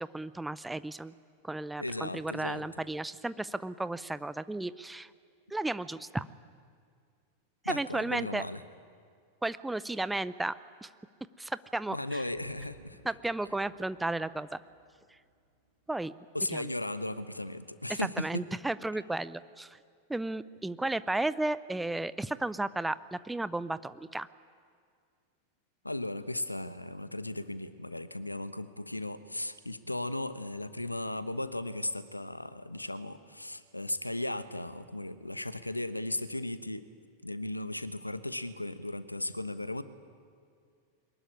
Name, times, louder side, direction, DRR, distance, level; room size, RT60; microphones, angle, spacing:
voice 1, 0.1-1.1 1.4-5.1 5.5-6.3 7.6-8.4 9.4-10.5 10.8-10.9 11.4-12.2 13.0-14.6 15.9-16.1 16.5-16.7 17.9-19.8 20.1-24.3, right 2 dB, 5° right, 15 dB, 0.6 m, -34 dB
voice 2, 1.8-2.7 7.6-8.6 11.9-13.0 16.3-18.4 25.8-36.9 37.2-39.8, left 1 dB, 85° left, 13 dB, 1.1 m, -36 dB
Boom, 12.3-16.7, right 3 dB, 90° right, 7.5 m, -62 dB
23.0 x 20.0 x 9.8 m, 2.2 s
figure-of-eight pair, 90°, 0 cm